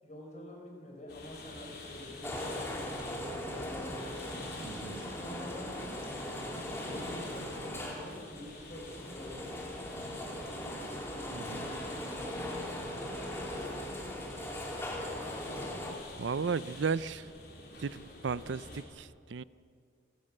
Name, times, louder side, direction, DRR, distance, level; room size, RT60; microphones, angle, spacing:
voice 1, 0.0-2.8 3.5-4.1 4.5-5.8 6.2-9.7 11.3-11.8 12.1-13.9, left 1 dB, 35° left, 0 dB, 5.5 m, -48 dB
sound 1, 1.1-18.8, left 2 dB, 55° left, 4.1 m, -49 dB
sound 2, 2.2-15.9, left 1 dB, 15° left, 3.0 m, -39 dB
voice 2, 4.6-5.0 11.3-11.7 16.2-17.3 17.8-19.4, right 5 dB, 70° right, 17 dB, 0.5 m, -35 dB
28.0 x 16.5 x 6.7 m, 2.2 s
head